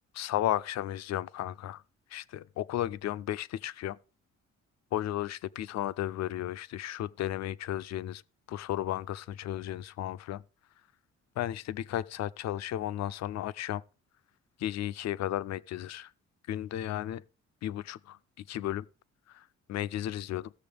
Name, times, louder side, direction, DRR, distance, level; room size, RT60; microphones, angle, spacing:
voice 1, 0.1-1.8 2.1-4.0 4.9-8.2 8.5-10.4 11.4-13.8 14.6-16.1 16.5-17.2 17.6-18.9 19.3-20.5, left 12 dB, 60° left, 0.5 m, -34 dB
17.0 x 6.8 x 3.4 m
cardioid pair, 90°, 30 cm